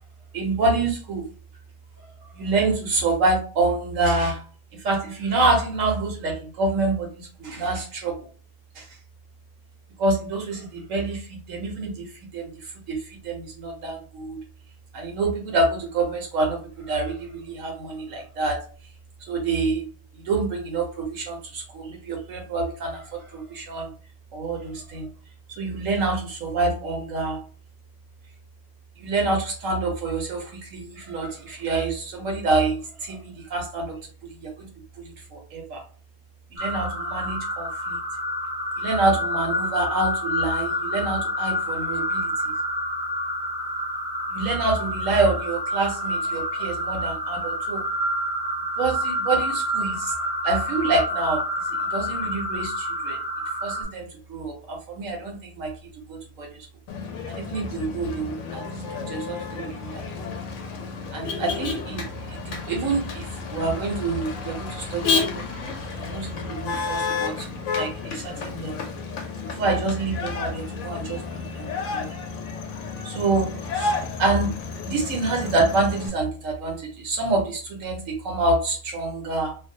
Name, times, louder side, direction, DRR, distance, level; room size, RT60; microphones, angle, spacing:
voice 1, 0.3-1.2 2.3-4.5 4.8-8.3 8.7-8.9 10.0-14.4 14.9-18.6 19.3-19.9 20.2-23.9 24.3-25.1 25.6-27.4 29.0-34.1 34.4-34.7 35.0-35.8 36.5-38.0 38.8-42.3 44.3-47.8 48.8-50.1 50.4-53.2 53.6-55.7 56.1-56.6 57.3-60.0 61.1-62.0 62.4-65.4 66.0-67.5 67.8-68.7 69.4-72.2 73.0-74.5 74.8-79.6, right 3 dB, 70° right, 1 dB, 0.9 m, -27 dB
sound 1, 36.6-53.8, equal, 25° left, 0.7 m, -28 dB
Motor vehicle (road), 56.9-76.1, left 4 dB, 65° left, 0.8 m, -31 dB
2.5 x 2.0 x 2.6 m, 0.39 s
omnidirectional pair, 1.5 m